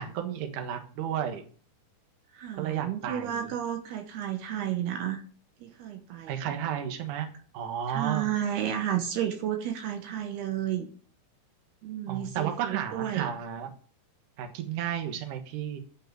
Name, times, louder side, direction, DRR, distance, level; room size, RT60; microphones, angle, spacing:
voice 1, 0.0-1.4 2.6-3.5 6.3-7.3 7.5-8.3 12.1-13.7 14.4-15.8, right 9 dB, 60° right, 5 dB, 2.6 m, -32 dB
voice 2, 2.3-5.2 5.6-6.6 7.9-10.9 11.8-13.3, right 10 dB, 80° right, 6 dB, 3.1 m, -32 dB
12.0 x 5.5 x 8.1 m, 0.43 s
omnidirectional pair, 4.7 m